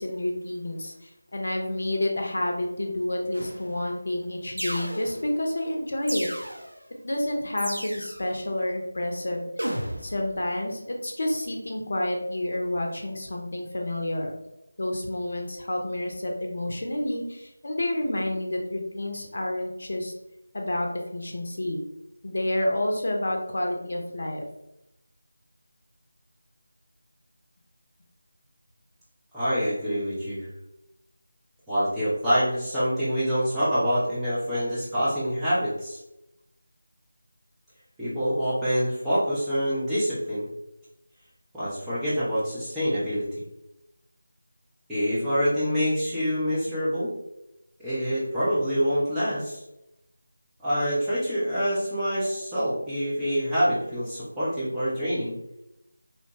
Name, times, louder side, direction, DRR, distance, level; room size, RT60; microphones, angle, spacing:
voice 1, 0.0-6.3 7.0-9.7 10.0-14.3 14.8-20.1 20.5-20.9 21.1-21.8 22.2-24.4, left 1 dB, 50° left, 1 dB, 0.6 m, -29 dB
sound 1, 3.3-3.8 4.6-5.4 6.1-6.8 7.6-8.3 9.6-10.3, equal, 65° right, 0.6 m, -34 dB
voice 2, 29.3-30.5 31.7-36.0 38.0-40.5 41.5-43.3 44.9-47.1 47.8-49.6 50.6-55.4, equal, 5° right, -14 dB, 0.5 m, -26 dB
2.8 x 2.1 x 2.8 m, 0.87 s
figure-of-eight pair, 165°, 0 cm